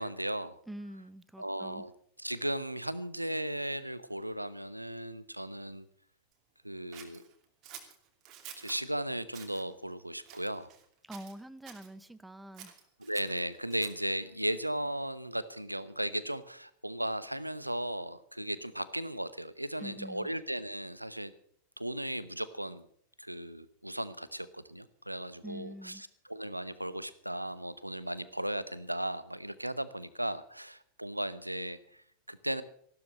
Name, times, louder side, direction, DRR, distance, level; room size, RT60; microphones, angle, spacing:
voice 1, 0.0-0.6 1.4-1.9 2.2-5.9 6.6-7.3 8.6-10.7 13.0-21.3 21.8-22.9 23.2-32.6, right 1 dB, 85° right, 16 dB, 0.8 m, -36 dB
voice 2, 0.7-1.8 11.1-12.7 19.8-20.3 25.4-26.0, right 1 dB, 5° right, 16 dB, 0.8 m, -45 dB
Scissors, 6.9-8.8 9.3-9.6 10.2-10.9 11.1-11.9 12.5-14.1, right 9 dB, 35° right, 2.6 m, -50 dB
15.0 x 12.5 x 6.3 m, 0.64 s
figure-of-eight pair, 90°, 0 cm